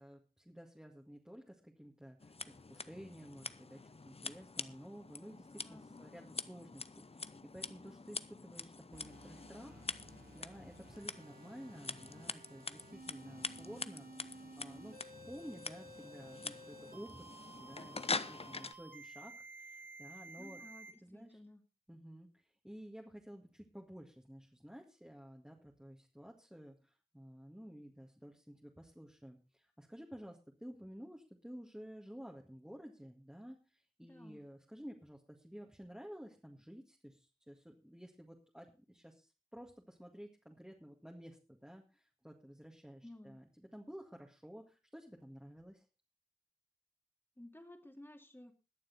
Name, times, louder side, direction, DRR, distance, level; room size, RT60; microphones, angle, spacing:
voice 1, 0.0-9.8 10.3-15.0 15.3-17.3 17.6-19.3 19.6-20.6 21.0-21.4 21.9-22.3 22.6-45.9, equal, 5° right, 0 dB, 1.9 m, -53 dB
Scissors, 2.2-18.7, left 3 dB, 45° left, 0.6 m, -45 dB
voice 2, 5.6-6.0 20.4-21.6 34.0-34.4 43.0-43.4 47.4-48.5, left 1 dB, 15° left, 5 dB, 2.4 m, -55 dB
sound 1, 8.9-20.9, right 2 dB, 90° right, 2.5 m, -54 dB
21.0 x 7.2 x 4.1 m, 0.31 s
wide cardioid pair, 60°, 14 cm